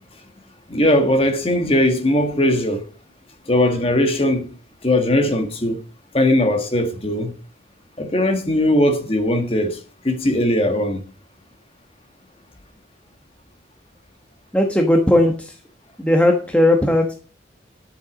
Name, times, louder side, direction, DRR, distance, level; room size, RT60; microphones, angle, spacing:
voice 1, 0.7-2.8 3.5-4.5 4.8-5.8 6.1-7.3 8.0-9.8 10.0-11.0, left 1 dB, 30° left, 1.6 m, -19 dB
voice 2, 14.5-15.5 16.0-17.1, left 1 dB, 5° left, 1.1 m, -17 dB
11.0 x 6.8 x 5.1 m
head